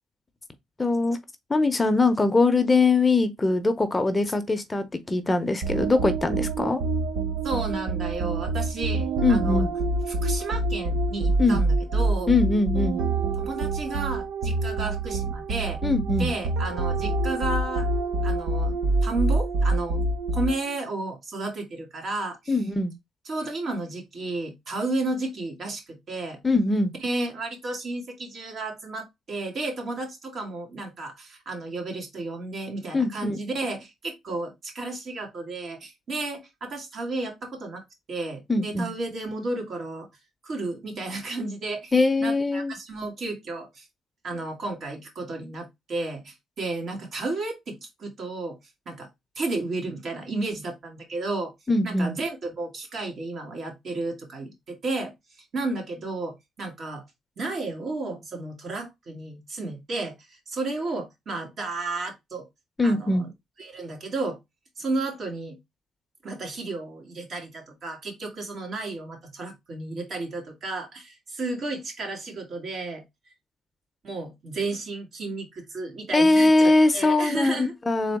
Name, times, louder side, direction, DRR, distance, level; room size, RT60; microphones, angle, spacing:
voice 1, 0.8-1.2 1.5-6.8 9.2-9.7 11.4-11.6 12.3-13.0 15.8-16.3 22.5-22.9 26.4-26.9 32.9-33.4 38.5-38.9 41.9-42.7 51.7-52.1 62.8-63.3 76.1-78.2, left 3 dB, 20° left, 0.7 m, -22 dB
Bass Pad & Piano, 5.6-20.8, right 2 dB, 80° right, 0.8 m, -26 dB
voice 2, 7.4-9.7 10.1-12.3 13.4-15.8 16.2-17.9 18.2-18.8 19.0-20.0 20.3-22.6 23.3-26.4 27.0-37.8 38.1-40.1 40.4-43.9 44.2-48.6 48.9-49.1 49.4-51.5 51.8-57.0 57.4-62.5 62.8-63.3 63.6-64.4 64.8-65.6 66.2-73.0 74.0-77.7, right 2 dB, 55° right, 2.1 m, -32 dB
3.8 x 3.3 x 3.5 m
cardioid pair, 90°, 0 cm